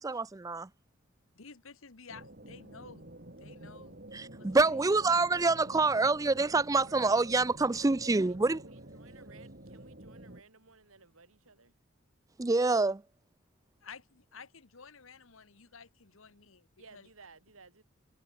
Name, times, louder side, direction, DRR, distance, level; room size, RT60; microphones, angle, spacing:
voice 1, 0.0-0.7 4.1-8.6 12.4-13.0, right 3 dB, 15° right, 0.4 m, -26 dB
voice 2, 1.3-3.1 3.4-4.0 4.4-4.8 13.8-17.1, left 5 dB, 70° left, 1.4 m, -52 dB
sound 1, 2.1-10.4, right 1 dB, 45° right, 3.9 m, -49 dB
voice 3, 8.2-11.8 16.8-17.8, right 4 dB, 85° right, 2.7 m, -57 dB
head